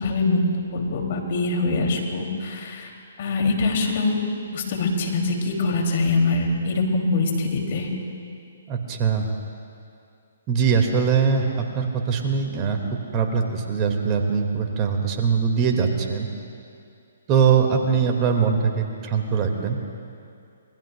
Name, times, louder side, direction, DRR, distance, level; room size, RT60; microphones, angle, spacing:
voice 1, 0.0-0.4 0.7-2.9 3.2-4.3 4.5-7.9, left 3 dB, 50° left, 2 dB, 2.8 m, -23 dB
voice 2, 8.7-9.3 10.5-12.8 13.1-16.3 17.3-19.8, right 6 dB, 30° right, 2 dB, 2.0 m, -22 dB
26.0 x 21.0 x 2.3 m, 2.5 s
hypercardioid pair, 135°, 0 cm